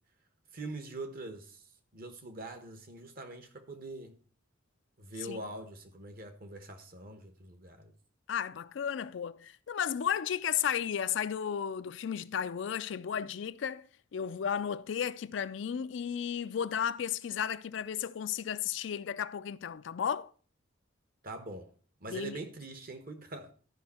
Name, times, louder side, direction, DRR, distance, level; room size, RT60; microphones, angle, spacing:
voice 1, 0.5-1.6 1.9-4.1 5.0-7.9 21.2-21.7 22.0-23.5, right 2 dB, 50° right, 1.1 m, -43 dB
voice 2, 8.3-13.9 14.1-20.3 22.1-22.4, left 8 dB, 65° left, 0.4 m, -34 dB
12.5 x 5.3 x 4.2 m
head